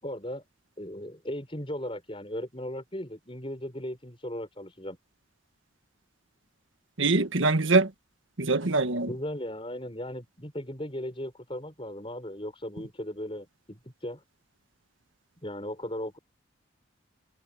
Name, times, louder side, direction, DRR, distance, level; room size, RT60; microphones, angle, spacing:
voice 1, 0.0-0.4 0.8-5.0 8.7-14.2 15.4-16.2, left 1 dB, 25° left, 6.2 m, -37 dB
voice 2, 7.0-7.9 8.4-9.1, right 3 dB, 80° right, 1.6 m, -23 dB
head